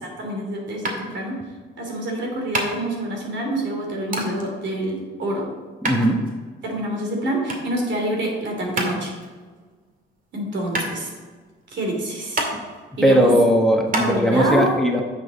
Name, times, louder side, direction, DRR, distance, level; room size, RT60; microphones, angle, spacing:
voice 1, 0.0-1.4 1.8-5.5 6.6-9.1 10.3-11.1 11.7-12.5 13.0-13.3 13.9-14.8, right 1 dB, 65° right, 1 dB, 3.0 m, -26 dB
sound 1, 0.8-14.1, right 2 dB, 45° right, 2.2 m, -31 dB
voice 2, 5.8-6.2 12.5-12.6 13.0-15.0, equal, ahead, 2 dB, 1.2 m, -18 dB
9.7 x 7.0 x 4.1 m, 1.5 s
cardioid pair, 90°, 20 cm